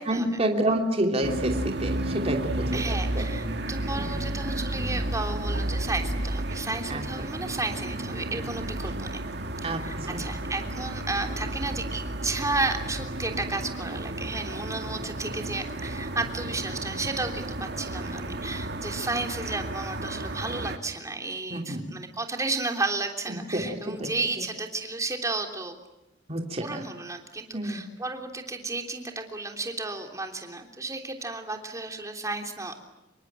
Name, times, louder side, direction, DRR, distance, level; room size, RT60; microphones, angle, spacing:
voice 1, 0.1-3.2 3.9-4.2 6.9-7.0 9.6-10.2 21.5-22.0 23.3-24.1 26.3-26.8 27.5-27.8, right 1 dB, 35° right, 2 dB, 3.1 m, -29 dB
sound 1, 1.2-20.8, right 1 dB, 65° right, 2.1 m, -32 dB
voice 2, 2.7-9.2 9.6-25.8 26.6-32.9, right 3 dB, 20° right, 4 dB, 3.3 m, -33 dB
27.0 x 23.5 x 8.9 m, 0.93 s
head